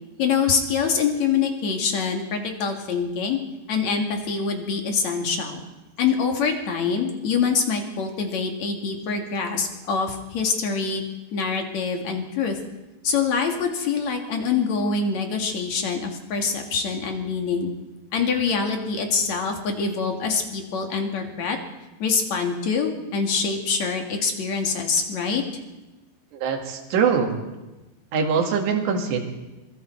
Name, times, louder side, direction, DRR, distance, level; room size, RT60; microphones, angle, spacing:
voice 1, 0.2-3.4 3.7-5.6 6.0-11.0 11.3-12.6 13.0-17.7 18.1-21.6 22.0-25.4, left 5 dB, 50° left, 3 dB, 2.8 m, -25 dB
voice 2, 26.3-27.3 28.1-29.3, right 6 dB, 75° right, 3 dB, 4.2 m, -23 dB
26.0 x 22.0 x 4.6 m, 1.1 s
omnidirectional pair, 5.1 m